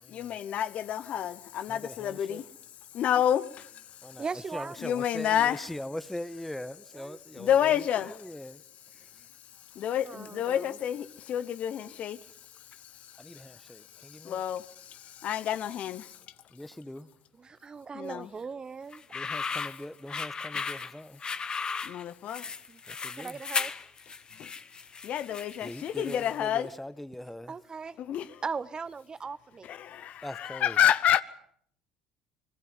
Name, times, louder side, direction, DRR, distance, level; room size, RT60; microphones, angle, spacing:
voice 1, 0.1-2.4 2.9-4.2 4.8-5.6 7.4-8.2 9.7-16.2 17.9-18.3 21.8-22.5 24.4-24.5 25.0-26.7 28.0-28.4 29.6-31.2, left 10 dB, 55° left, 0.9 m, -29 dB
voice 2, 1.7-2.4 4.0-8.6 8.9-9.3 13.2-14.4 16.5-17.1 19.1-21.3 22.9-23.4 25.6-27.6 30.2-30.8, left 1 dB, 5° left, 1.2 m, -42 dB
voice 3, 4.2-4.8 7.0-7.2 10.1-10.8 17.4-19.0 22.7-22.8 23.2-23.7 27.5-28.2 28.4-29.7, right 5 dB, 30° right, 0.9 m, -38 dB
sound 1, 18.9-26.5, left 5 dB, 30° left, 1.3 m, -36 dB
29.5 x 21.0 x 5.5 m
hypercardioid pair, 60°, 3 cm